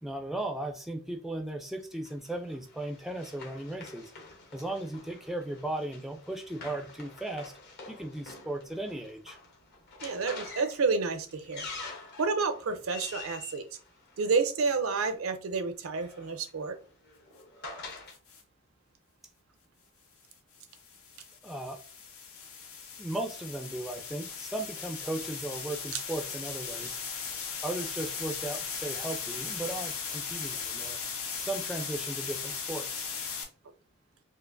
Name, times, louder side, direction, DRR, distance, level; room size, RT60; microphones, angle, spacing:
voice 1, 0.0-4.1 4.5-7.5 7.9-9.4 21.4-21.8 23.0-27.0 27.3-31.0 31.3-33.1, right 1 dB, ahead, 5 dB, 0.4 m, -36 dB
Run, 2.1-14.7 15.7-18.2, left 4 dB, 50° left, 1.0 m, -47 dB
voice 2, 10.0-11.7 12.2-13.6 14.2-16.8 25.9-26.0, right 4 dB, 80° right, 9 dB, 0.6 m, -29 dB
sound 1, 18.1-18.4 20.5-33.4, left 6 dB, 85° left, 0.9 m, -38 dB
4.4 x 2.5 x 2.5 m, 0.37 s
head